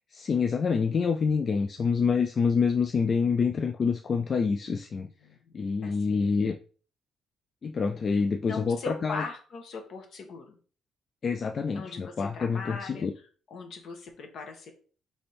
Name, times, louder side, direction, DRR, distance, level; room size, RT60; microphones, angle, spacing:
voice 1, 0.1-5.1 5.5-6.6 7.6-9.3 11.2-13.1, left 5 dB, 45° left, 6 dB, 0.3 m, -27 dB
voice 2, 5.0-5.4 5.8-6.3 8.5-10.5 11.7-13.1 13.5-14.7, left 4 dB, 65° left, 4 dB, 1.1 m, -40 dB
3.5 x 3.3 x 4.2 m, 0.41 s
cardioid pair, 90°, 0 cm